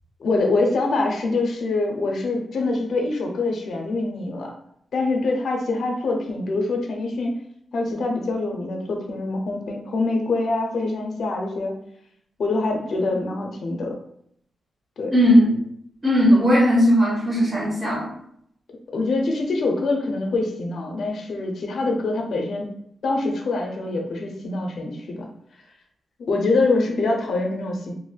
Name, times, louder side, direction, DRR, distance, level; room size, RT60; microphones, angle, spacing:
voice 1, 0.2-4.5 4.9-7.3 7.7-11.8 12.4-13.9 15.0-15.1 18.9-22.7 23.0-25.3 26.2-27.9, left 3 dB, 65° left, 2 dB, 0.5 m, -24 dB
voice 2, 15.1-15.6 16.0-18.1, equal, 25° right, -4 dB, 0.9 m, -17 dB
3.1 x 2.5 x 2.2 m, 0.70 s
wide cardioid pair, 150°, 0 cm